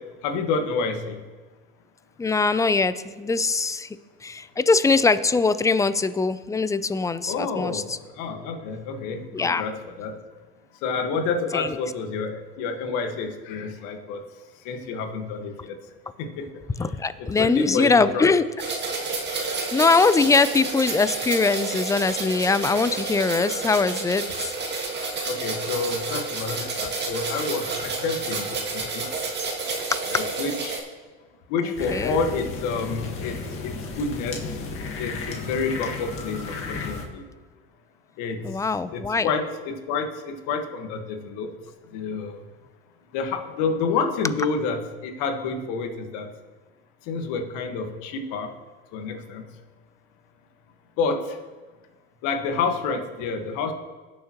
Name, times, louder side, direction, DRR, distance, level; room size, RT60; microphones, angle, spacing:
voice 1, 0.2-1.2 7.3-10.1 10.8-14.2 14.6-15.7 16.2-16.5 17.4-18.3 25.2-29.1 30.1-30.8 31.5-33.4 33.6-34.5 35.0-37.2 38.2-38.5 38.9-41.5 41.9-42.4 43.1-46.3 47.1-48.5 48.9-49.4 51.0-51.4 52.2-53.7, left 4 dB, 65° left, 5 dB, 1.6 m, -29 dB
voice 2, 2.2-4.0 4.2-8.0 9.3-9.6 11.5-11.8 16.8-18.4 19.7-24.5 31.9-32.2 38.4-39.3, left 4 dB, 10° left, 15 dB, 0.4 m, -22 dB
sound 1, 18.6-30.8, right 3 dB, 35° right, 2.0 m, -30 dB
sound 2, 31.8-37.0, left 4 dB, 40° left, 1.9 m, -33 dB
18.0 x 6.6 x 3.0 m, 1.3 s
supercardioid pair, 90°, 32 cm